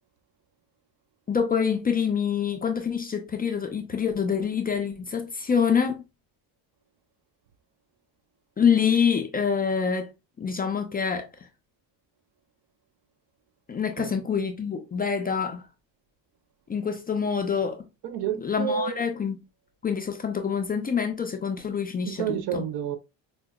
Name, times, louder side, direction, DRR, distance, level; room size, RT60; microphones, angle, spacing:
voice 1, 1.3-6.0 8.6-10.1 10.4-11.3 13.7-15.6 16.7-17.8 18.4-19.4 19.8-22.6, left 6 dB, 20° left, 0.4 m, -26 dB
voice 2, 18.0-19.0 22.1-23.0, right 9 dB, 60° right, 0.6 m, -30 dB
4.8 x 2.1 x 2.2 m
cardioid pair, 105°, 45 cm